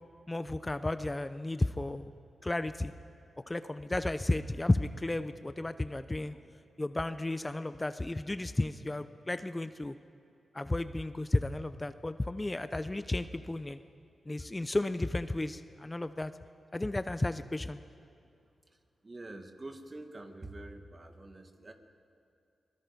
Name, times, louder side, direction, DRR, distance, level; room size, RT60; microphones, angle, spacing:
voice 1, 0.3-2.1 2.4-2.9 3.5-6.3 6.8-9.9 10.5-13.8 14.3-16.3 16.7-17.8, left 2 dB, 25° left, 11 dB, 0.8 m, -33 dB
voice 2, 19.0-21.7, right 2 dB, 35° right, 5 dB, 2.1 m, -46 dB
24.0 x 21.0 x 5.4 m, 2.5 s
supercardioid pair, 50°, 0 cm